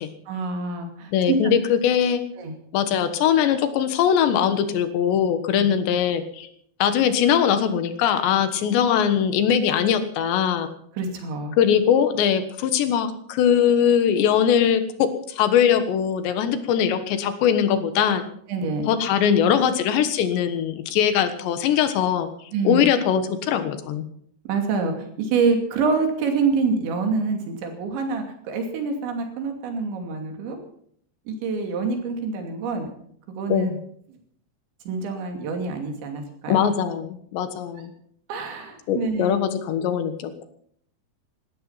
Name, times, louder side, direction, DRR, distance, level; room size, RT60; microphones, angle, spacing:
voice 1, 0.3-1.4 2.4-2.5 5.5-5.7 11.0-11.5 18.5-18.9 22.5-22.9 24.4-30.6 31.3-32.9 33.3-33.7 34.9-36.7 38.3-39.4, right 4 dB, 85° right, 4 dB, 5.0 m, -26 dB
voice 2, 1.1-2.2 2.7-6.5 6.8-10.7 11.6-18.2 18.9-24.1 33.5-33.8 36.5-37.9 38.9-40.5, left 8 dB, 80° left, 10 dB, 3.6 m, -21 dB
18.5 x 13.0 x 5.8 m, 0.65 s
omnidirectional pair, 5.1 m